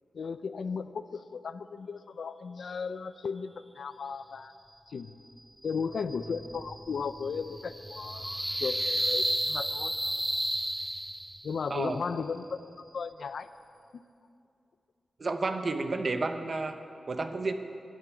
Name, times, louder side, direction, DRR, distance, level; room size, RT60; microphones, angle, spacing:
voice 1, 0.1-4.5 4.9-5.1 5.6-9.9 11.4-12.6 12.9-13.5, left 5 dB, 65° left, 12 dB, 0.6 m, -35 dB
sound 1, 5.6-11.6, right 1 dB, 5° right, 0.3 m, -33 dB
voice 2, 15.2-16.8 17.1-17.5, right 3 dB, 35° right, 7 dB, 0.9 m, -31 dB
12.5 x 10.5 x 9.6 m, 2.5 s
wide cardioid pair, 180°, 0 cm